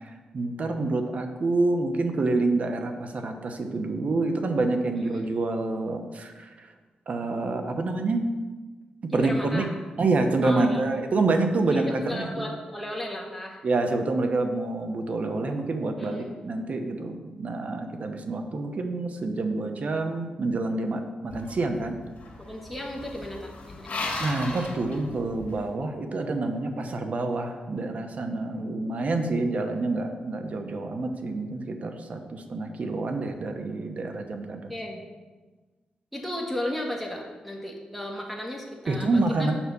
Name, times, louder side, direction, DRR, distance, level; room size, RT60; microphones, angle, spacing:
voice 1, 0.0-6.7 7.1-8.3 9.1-9.7 10.0-12.5 13.6-22.0 24.2-34.7 38.9-39.5, right 3 dB, 55° right, 5 dB, 1.0 m, -27 dB
voice 2, 5.0-5.3 9.1-9.7 10.4-10.8 11.7-13.6 16.0-16.3 22.4-24.1 34.7-35.0 36.1-39.5, left 1 dB, ahead, -2 dB, 1.5 m, -35 dB
sound 1, 21.3-25.6, left 2 dB, 55° left, 2.1 m, -37 dB
7.3 x 5.7 x 6.9 m, 1.3 s
cardioid pair, 90°, 3 cm